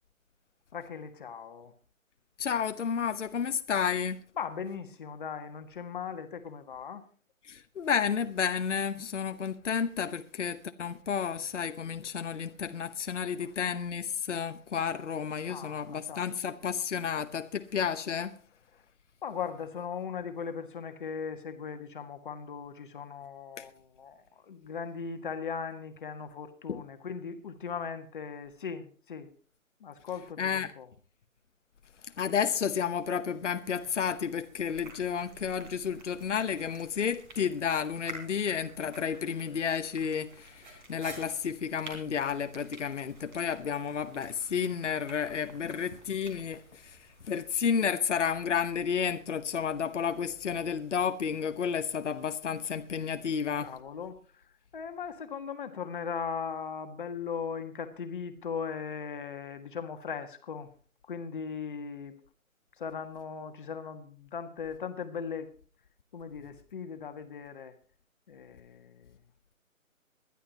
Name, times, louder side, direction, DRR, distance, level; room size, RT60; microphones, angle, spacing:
voice 1, 0.7-1.7 4.4-7.0 13.4-13.5 15.5-16.3 19.2-29.3 29.8-30.9 45.6-45.8 53.6-54.4 54.7-60.7 61.1-62.2 62.8-65.5 66.1-67.7 68.3-69.2, left 6 dB, 35° left, 1.6 m, -38 dB
voice 2, 2.4-4.2 7.4-18.3 23.6-23.7 26.7-26.8 30.4-30.7 32.2-47.0 47.2-53.7, left 7 dB, 60° left, 1.0 m, -31 dB
sound 1, 33.7-47.7, right 3 dB, 35° right, 3.7 m, -51 dB
22.5 x 11.0 x 2.9 m
figure-of-eight pair, 155°, 42 cm